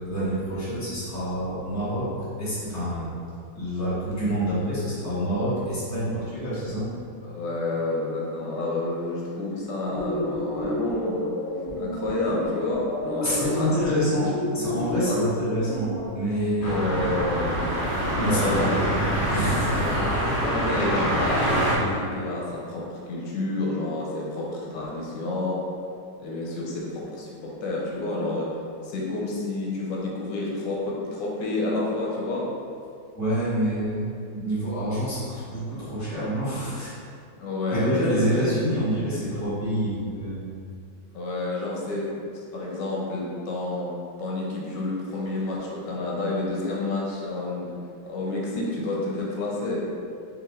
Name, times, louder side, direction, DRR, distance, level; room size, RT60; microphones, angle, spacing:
voice 1, 0.0-2.1 2.4-3.1 3.5-6.9 13.2-16.9 18.2-18.8 19.3-19.8 33.1-34.0 34.3-36.9 37.7-40.4, equal, 10° left, -11 dB, 1.2 m, -27 dB
voice 2, 7.2-11.3 11.7-14.0 15.1-15.2 16.7-17.5 18.2-18.8 19.7-19.9 20.4-25.6 26.2-28.5 28.8-32.5 37.4-38.5 39.3-39.4 41.1-42.0 42.5-43.9 44.2-47.7 48.0-49.8, left 2 dB, 80° left, -3 dB, 1.5 m, -29 dB
sound 1, 9.8-16.1, left 1 dB, 40° left, 1.8 m, -30 dB
sound 2, 16.6-21.8, equal, 65° left, 0.5 m, -25 dB
5.0 x 2.9 x 3.7 m, 2.4 s
omnidirectional pair, 1.9 m